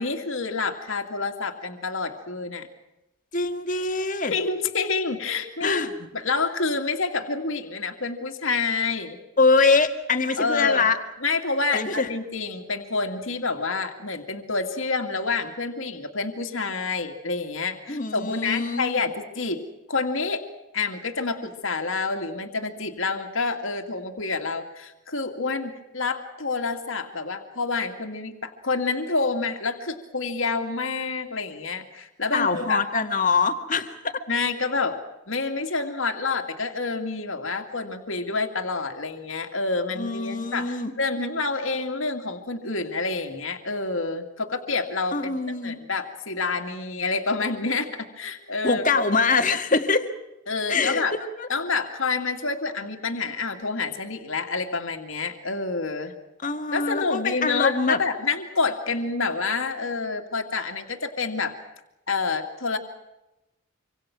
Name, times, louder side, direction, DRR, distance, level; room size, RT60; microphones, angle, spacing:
voice 1, 0.0-2.7 4.3-5.8 6.1-9.2 10.4-10.9 11.2-19.6 19.9-20.4 20.7-32.8 34.3-35.0 35.3-49.0 50.5-51.1 51.5-56.1 56.7-61.6 62.1-62.8, left 4 dB, 65° left, 4 dB, 2.4 m, -28 dB
voice 2, 3.3-4.3 5.6-5.9 9.4-11.0 11.7-12.1 17.9-19.0 32.3-34.1 40.0-40.9 45.1-45.8 48.6-50.1 50.7-51.1 51.4-51.5 56.4-58.0, left 4 dB, 35° left, 6 dB, 1.9 m, -23 dB
26.0 x 26.0 x 6.1 m, 0.96 s
head